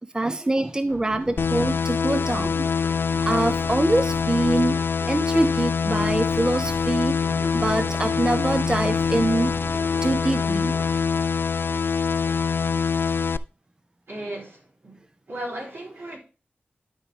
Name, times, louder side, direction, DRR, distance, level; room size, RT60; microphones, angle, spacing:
voice 1, 0.1-2.7 3.1-4.8 5.1-9.6 9.9-10.7 12.3-12.4, right 2 dB, 20° right, 0.5 m, -25 dB
sound 1, 0.9-12.1, right 1 dB, 90° right, 3.6 m, -42 dB
sound 2, 1.4-13.4, left 6 dB, 65° left, 0.3 m, -24 dB
voice 2, 14.1-15.0 15.3-16.2, right 1 dB, 75° right, 3.5 m, -35 dB
12.0 x 4.8 x 3.4 m
wide cardioid pair, 75°, 4 cm